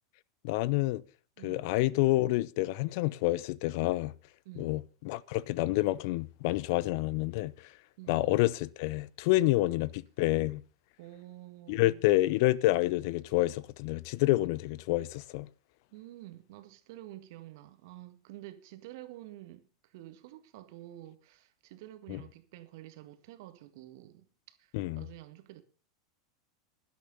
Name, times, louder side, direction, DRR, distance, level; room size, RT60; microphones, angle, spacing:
voice 1, 0.4-1.0 1.4-4.1 4.6-7.5 8.1-10.6 11.7-15.5 22.1-22.2 24.7-25.0, left 18 dB, 55° left, 0.6 m, -28 dB
voice 2, 1.4-1.7 4.5-4.8 8.0-8.3 9.4-9.7 11.0-12.0 15.9-25.6, right 15 dB, 60° right, 1.8 m, -49 dB
11.5 x 11.5 x 5.4 m
figure-of-eight pair, 90°, 2 cm